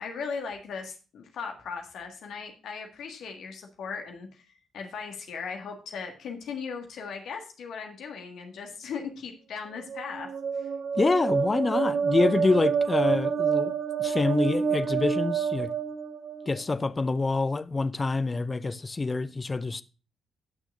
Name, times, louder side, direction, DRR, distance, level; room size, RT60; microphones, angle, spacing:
voice 1, 0.0-4.4 4.7-10.7, left 5 dB, 55° left, 1.7 m, -38 dB
sound 1, 9.8-16.6, right 6 dB, 50° right, 0.6 m, -28 dB
voice 2, 11.0-13.7 14.0-15.7 16.5-19.8, left 3 dB, 25° left, 0.6 m, -26 dB
17.5 x 6.3 x 2.5 m
figure-of-eight pair, 40°, 0 cm